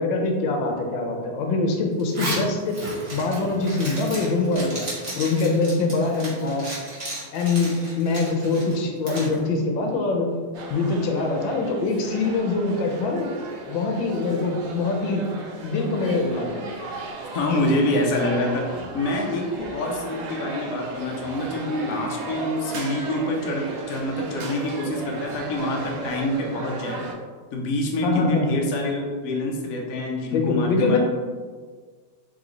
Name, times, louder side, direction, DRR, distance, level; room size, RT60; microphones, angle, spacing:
voice 1, 0.0-2.8 3.1-4.8 5.2-6.7 7.3-10.3 10.7-13.3 13.7-15.3 15.6-16.6 28.0-28.6 30.3-31.0, left 3 dB, 80° left, 2 dB, 1.4 m, -24 dB
Zipper (clothing), 2.0-9.3, right 1 dB, 25° right, 1.1 m, -34 dB
sound 1, 10.5-27.1, right 2 dB, 75° right, 0.6 m, -36 dB
voice 2, 17.3-27.0 27.5-31.0, left 1 dB, 60° left, 0 dB, 0.9 m, -26 dB
3.8 x 3.0 x 3.8 m, 1.5 s
omnidirectional pair, 2.1 m